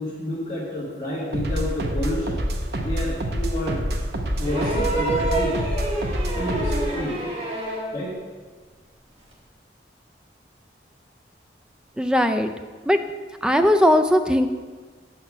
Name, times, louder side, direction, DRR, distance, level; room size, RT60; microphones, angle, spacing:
voice 1, 0.0-2.4 2.7-3.8 4.4-5.6 6.3-7.3 7.9-8.2, left 1 dB, 25° left, -10 dB, 1.4 m, -29 dB
sound 1, 1.3-7.0, equal, 65° right, 0.7 m, -27 dB
sound 2, 4.4-8.0 9.3-9.4, right 2 dB, 30° right, 1.2 m, -27 dB
voice 2, 12.0-12.5 12.9-13.0 13.4-14.5, left 1 dB, 5° right, 7 dB, 0.3 m, -18 dB
6.7 x 4.4 x 6.0 m, 1.4 s
head